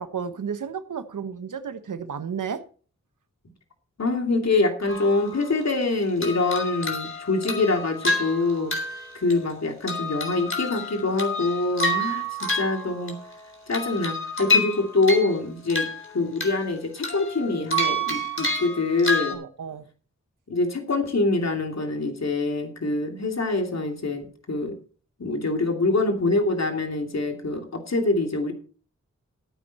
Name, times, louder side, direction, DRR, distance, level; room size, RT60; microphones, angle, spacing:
voice 1, 0.0-2.6 19.3-19.8, right 7 dB, 90° right, 1.1 m, -32 dB
voice 2, 4.0-8.7 9.1-13.1 13.7-15.9 16.1-19.4 20.5-24.7 25.2-28.5, left 3 dB, 60° left, 2.8 m, -25 dB
sound 1, 4.9-5.8 6.2-9.5 9.9-13.3 13.7-15.4 15.7-16.7 17.0-19.3, left 1 dB, 40° left, 3.9 m, -28 dB
14.0 x 9.1 x 4.2 m
wide cardioid pair, 60°, 30 cm